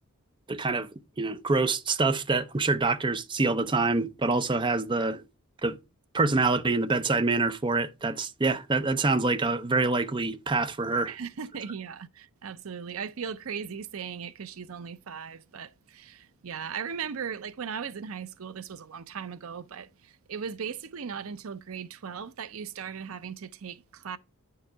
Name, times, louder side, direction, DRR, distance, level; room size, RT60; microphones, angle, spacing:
voice 1, 0.5-0.9 1.2-5.2 5.6-5.8 6.1-11.1, right 3 dB, 20° right, 0.5 m, -26 dB
voice 2, 11.1-24.2, right 6 dB, 70° right, 0.5 m, -38 dB
9.8 x 4.7 x 4.5 m
head